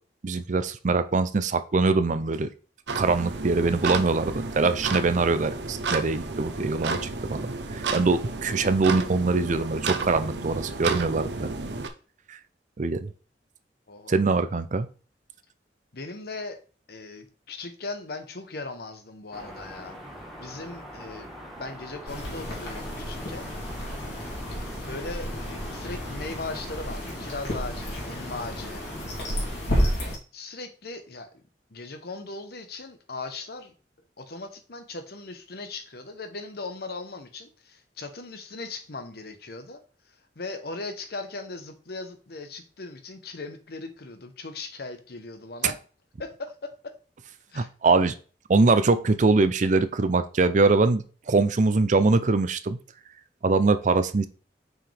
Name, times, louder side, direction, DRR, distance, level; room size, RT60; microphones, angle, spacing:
voice 1, 0.2-2.5 3.0-11.5 12.3-12.4 12.8-13.1 14.1-14.9 47.5-48.1 48.5-52.8 53.4-54.3, right 3 dB, 45° right, 12 dB, 0.5 m, -23 dB
sound 1, 2.9-11.9, right 3 dB, 80° right, 0.8 m, -32 dB
voice 2, 13.9-14.3 15.9-16.6 16.9-20.0 20.4-21.3 21.6-23.5 24.5-28.8 29.2-29.3 29.7-30.0 30.3-31.3 31.7-33.7 34.2-39.8 40.4-45.8 46.2-46.9 47.5-47.7, left 3 dB, 65° left, 7 dB, 1.0 m, -38 dB
sound 2, 19.3-29.6, equal, ahead, 1.6 m, -43 dB
sound 3, 22.1-30.2, equal, 80° left, 2.8 m, -31 dB
6.0 x 4.9 x 3.4 m, 0.38 s
head